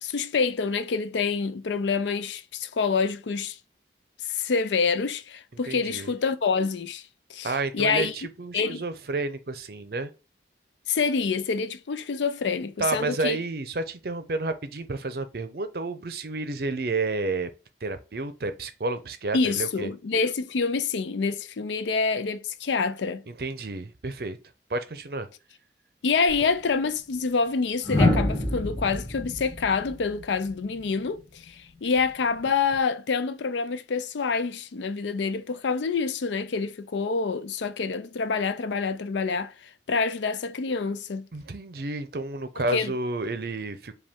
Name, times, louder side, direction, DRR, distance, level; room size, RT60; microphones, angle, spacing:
voice 1, 0.0-3.6 4.3-7.0 7.3-8.1 8.5-8.8 10.9-13.4 19.3-23.2 26.0-41.3 42.6-42.9, left 5 dB, 90° left, 0.5 m, -27 dB
voice 2, 5.7-6.1 7.4-10.1 12.8-17.5 17.8-19.9 23.3-24.4 24.7-25.3 41.3-44.0, right 3 dB, 55° right, 0.6 m, -30 dB
sound 1, 26.3-26.5 27.8-30.9 32.4-32.7, left 1 dB, 5° left, 2.5 m, -26 dB
5.1 x 2.3 x 3.5 m
head